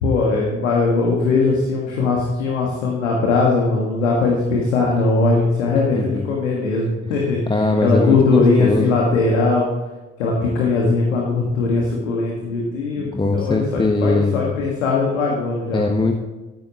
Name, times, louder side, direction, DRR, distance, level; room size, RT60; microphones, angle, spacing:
voice 1, 0.0-7.4 7.8-9.7 10.2-15.8, left 3 dB, 80° left, -1 dB, 1.8 m, -19 dB
voice 2, 6.0-6.3 7.1-8.9 13.0-14.5 15.7-16.1, left 2 dB, 15° left, 3 dB, 1.2 m, -21 dB
13.5 x 11.0 x 3.0 m, 1.2 s
figure-of-eight pair, 50°, 36 cm